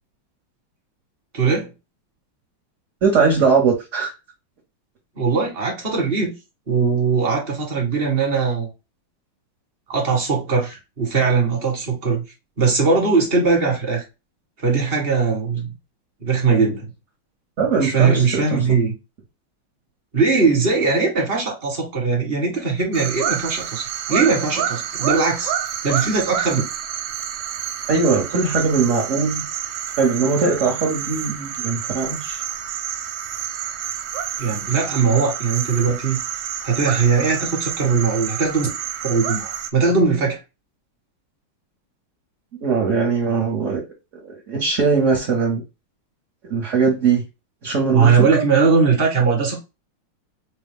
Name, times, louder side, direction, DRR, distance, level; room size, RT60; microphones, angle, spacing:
voice 1, 1.3-1.7 5.2-6.3 6.7-8.7 9.9-12.2 12.6-14.0 14.6-15.7 16.2-16.9 17.8-18.9 20.1-25.5 25.8-26.6 34.4-36.2 36.6-38.7 39.0-40.4 47.9-49.6, right 5 dB, 30° right, 1.3 m, -20 dB
voice 2, 3.0-4.1 17.6-18.6 27.9-29.4 30.0-32.4 42.6-43.8 44.5-45.6 46.5-47.2 47.6-48.4, right 5 dB, 50° right, 1.0 m, -20 dB
sound 1, 22.9-39.7, right 9 dB, 75° right, 1.3 m, -28 dB
5.0 x 2.2 x 3.4 m
omnidirectional pair, 2.3 m